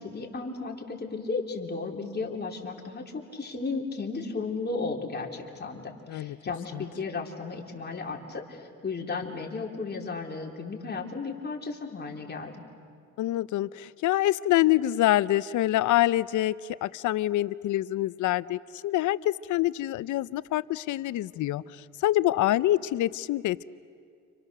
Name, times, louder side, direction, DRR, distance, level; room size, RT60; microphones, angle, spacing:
voice 1, 0.0-12.5, left 4 dB, 35° left, 0 dB, 3.4 m, -34 dB
voice 2, 13.2-23.6, left 14 dB, 75° left, 17 dB, 0.7 m, -26 dB
30.0 x 27.0 x 6.7 m, 2.2 s
cardioid pair, 90°, 30 cm